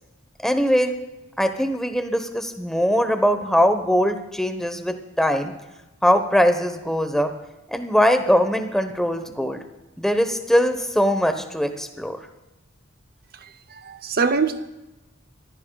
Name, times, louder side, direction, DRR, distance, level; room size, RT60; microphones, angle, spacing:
voice 1, 0.4-1.0 1.4-5.5 6.0-7.3 7.7-9.6 10.0-12.2, equal, ahead, 7 dB, 1.1 m, -21 dB
voice 2, 13.4-14.7, right 4 dB, 50° right, 9 dB, 0.8 m, -24 dB
25.5 x 15.5 x 2.4 m, 1.0 s
head